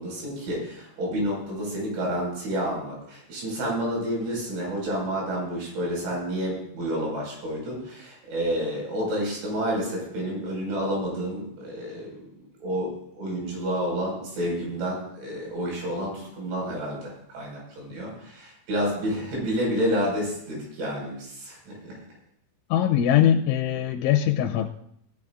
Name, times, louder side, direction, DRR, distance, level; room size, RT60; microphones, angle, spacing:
voice 1, 0.0-12.1 12.6-22.0, equal, 70° right, -2 dB, 7.5 m, -29 dB
voice 2, 22.7-24.7, left 10 dB, 90° left, 2 dB, 3.1 m, -21 dB
18.5 x 13.5 x 2.5 m, 0.73 s
omnidirectional pair, 5.4 m